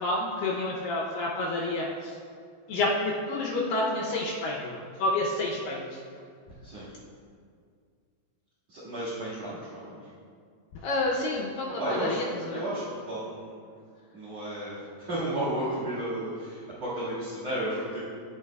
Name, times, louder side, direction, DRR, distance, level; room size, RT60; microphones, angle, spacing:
voice 1, 0.0-2.2 2.7-6.0 6.7-6.8 10.8-12.6, left 2 dB, 75° left, -3 dB, 2.2 m, -29 dB
voice 2, 8.7-10.1 11.8-12.2 12.5-13.7 14.1-18.0, right 1 dB, 50° right, -9 dB, 2.7 m, -33 dB
16.0 x 5.4 x 2.3 m, 2.2 s
omnidirectional pair, 4.6 m